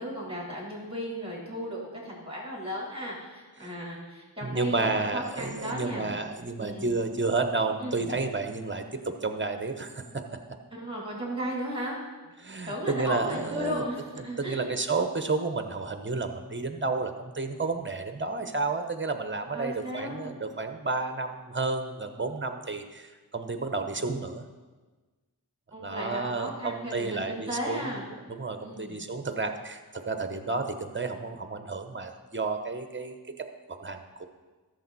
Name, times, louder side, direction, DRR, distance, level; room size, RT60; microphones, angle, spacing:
voice 1, 0.0-6.1 6.6-7.0 7.8-8.1 10.7-12.0 12.7-14.7 19.5-20.4 25.7-28.1 28.6-29.0, equal, 15° right, -4 dB, 3.7 m, -35 dB
voice 2, 4.4-8.8 9.2-10.2 12.4-13.8 14.4-24.4 25.8-34.3, right 3 dB, 30° right, 7 dB, 1.0 m, -31 dB
13.5 x 6.8 x 4.2 m, 1.3 s
wide cardioid pair, 45°, 38 cm